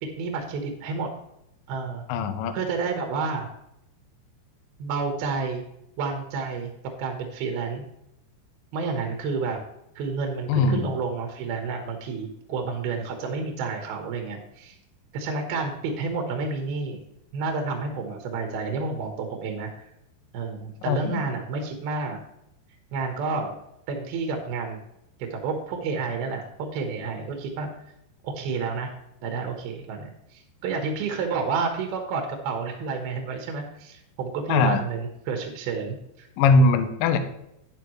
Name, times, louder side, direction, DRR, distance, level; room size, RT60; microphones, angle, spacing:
voice 1, 0.0-1.1 1.7-2.1 2.5-3.5 4.8-5.6 6.0-6.7 7.0-7.8 8.7-9.6 10.0-14.8 15.1-17.0 17.3-19.9 20.3-22.2 22.9-23.5 23.9-24.8 25.2-26.4 26.7-27.7 28.2-28.9 29.2-36.3, right 4 dB, 65° right, 3 dB, 2.8 m, -30 dB
voice 2, 2.1-2.5 10.5-10.9 20.9-21.0 34.5-34.8 36.4-37.2, left 3 dB, 90° left, 7 dB, 1.9 m, -20 dB
11.0 x 10.5 x 3.1 m, 0.81 s
omnidirectional pair, 5.3 m